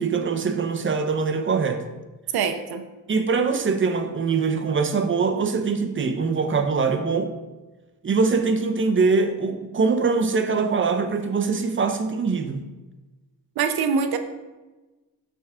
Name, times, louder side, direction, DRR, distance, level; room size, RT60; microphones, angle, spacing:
voice 1, 0.0-1.8 3.1-7.3 8.0-12.6, right 4 dB, 35° right, 6 dB, 0.8 m, -23 dB
voice 2, 2.3-2.8 13.6-14.2, right 6 dB, 85° right, 7 dB, 0.6 m, -23 dB
6.9 x 3.6 x 4.9 m, 1.2 s
cardioid pair, 70°, 36 cm